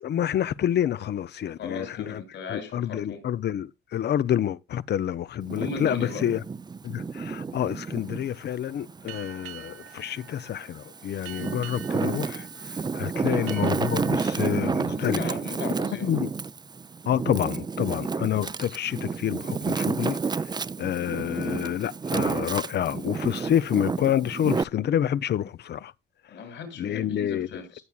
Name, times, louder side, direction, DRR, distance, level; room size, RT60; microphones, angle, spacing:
voice 1, 0.0-2.2 2.5-6.4 6.8-12.5 12.9-15.2 16.0-16.3 17.1-20.2 20.8-25.9 26.8-27.6, left 10 dB, 55° left, 0.6 m, -28 dB
voice 2, 1.6-3.3 5.6-6.3 13.2-13.6 14.9-16.1 26.3-27.8, left 5 dB, 75° left, 7.3 m, -37 dB
Wind, 5.4-8.3 8.8-10.1 10.7-24.6, right 5 dB, 20° right, 0.5 m, -30 dB
sound 1, 9.1-16.4, right 12 dB, 90° right, 1.3 m, -47 dB
18.0 x 7.2 x 2.4 m
cardioid pair, 90°, 20 cm